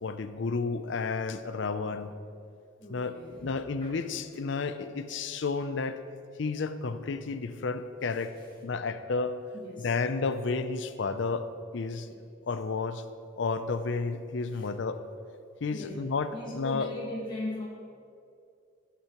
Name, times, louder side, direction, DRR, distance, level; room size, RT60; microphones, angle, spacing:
voice 1, 0.0-2.1 2.9-6.0 6.4-8.3 8.6-9.4 9.8-11.5 11.7-12.1 12.5-13.0 13.4-15.0 15.6-16.9, left 4 dB, 60° left, 11 dB, 0.5 m, -31 dB
voice 2, 2.8-3.6 3.8-3.9 9.5-9.9 14.6-14.7 15.7-16.0 16.3-17.7, left 1 dB, 25° left, -6 dB, 1.3 m, -39 dB
14.5 x 8.5 x 3.0 m, 2.4 s
head